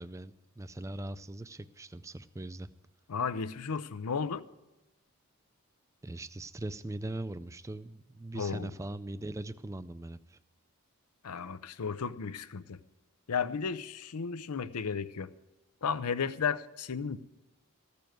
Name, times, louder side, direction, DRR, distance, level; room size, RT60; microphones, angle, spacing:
voice 1, 0.0-2.7 6.0-10.4, right 2 dB, 15° right, 14 dB, 0.4 m, -40 dB
voice 2, 3.1-4.4 8.3-8.7 11.2-12.8 13.3-15.3 15.8-17.2, left 6 dB, 85° left, 14 dB, 0.6 m, -34 dB
15.0 x 6.9 x 9.1 m, 1.0 s
head